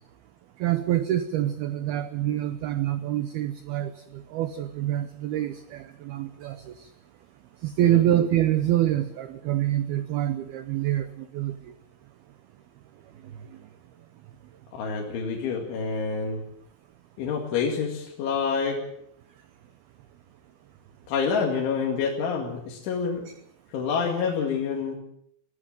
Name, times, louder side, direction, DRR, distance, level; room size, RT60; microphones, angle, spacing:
voice 1, 0.6-6.9 7.6-11.6, right 12 dB, 80° right, 2.2 m, -26 dB
voice 2, 14.7-16.4 17.2-18.8 21.1-23.3 23.7-25.0, left 5 dB, 70° left, 4.6 m, -27 dB
24.0 x 16.5 x 7.5 m
omnidirectional pair, 5.7 m